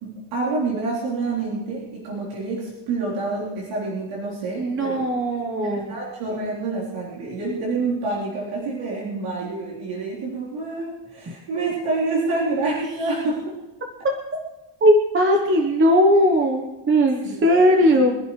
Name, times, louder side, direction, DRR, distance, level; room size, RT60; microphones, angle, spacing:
voice 1, 0.0-5.0 5.6-13.5 17.2-17.3 17.8-17.9, right 3 dB, 80° right, -6 dB, 4.0 m, -27 dB
voice 2, 4.6-5.9 14.8-18.1, equal, 25° right, 2 dB, 1.1 m, -18 dB
24.5 x 12.0 x 3.3 m, 1.1 s
cardioid pair, 175°, 49 cm